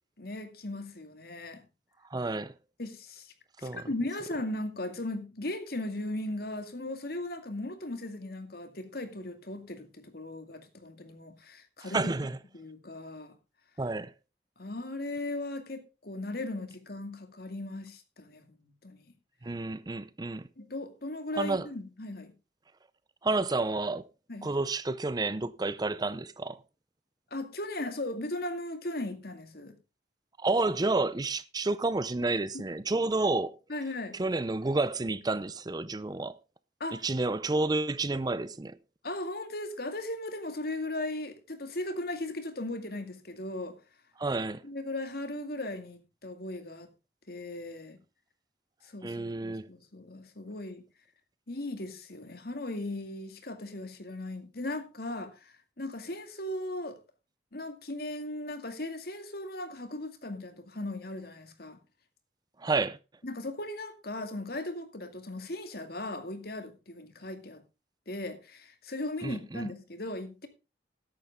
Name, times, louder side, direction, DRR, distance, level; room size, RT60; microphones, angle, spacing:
voice 1, 0.2-1.6 2.8-3.3 3.6-12.1 12.5-13.4 14.6-18.5 18.8-19.1 20.6-22.3 24.3-24.5 27.3-29.8 32.5-32.6 33.7-34.2 36.8-37.0 39.0-43.8 44.6-46.9 47.3-48.0 48.8-50.8 51.5-57.0 57.5-61.8 63.2-67.6 68.1-70.5, left 1 dB, 60° left, 2.2 m, -37 dB
voice 2, 2.1-2.5 3.6-3.8 11.8-12.4 13.8-14.1 19.4-20.5 21.4-21.7 23.2-24.1 24.4-26.6 30.4-33.6 34.1-36.4 36.9-38.8 44.2-44.6 49.0-49.7 62.6-63.0 69.2-69.7, right 2 dB, 20° right, 0.5 m, -30 dB
13.5 x 11.0 x 3.5 m
head